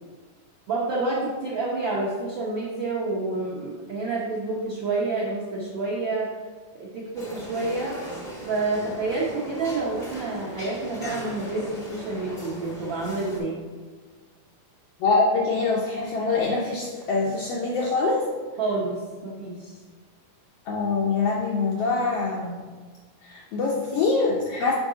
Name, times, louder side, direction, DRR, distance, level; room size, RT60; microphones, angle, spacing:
voice 1, 0.7-6.3 6.8-7.9 8.4-13.6 18.6-19.8, right 3 dB, 75° right, -5 dB, 1.1 m, -28 dB
sound 1, 7.1-13.4, right 1 dB, 40° left, 0.6 m, -38 dB
voice 2, 15.0-18.3 20.7-22.6 23.2-24.7, left 3 dB, 80° left, -2 dB, 1.4 m, -24 dB
6.4 x 5.0 x 3.8 m, 1.5 s
omnidirectional pair, 3.5 m